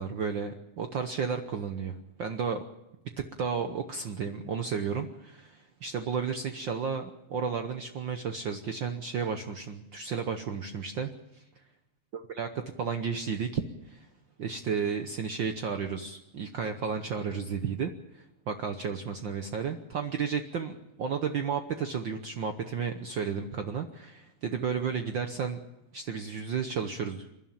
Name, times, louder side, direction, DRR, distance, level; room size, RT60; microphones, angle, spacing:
voice 1, 0.0-2.6 3.4-11.4 12.1-14.1 14.4-25.6 25.9-27.3, right 6 dB, 90° right, 6 dB, 1.0 m, -33 dB
27.5 x 11.5 x 9.2 m, 0.93 s
omnidirectional pair, 3.6 m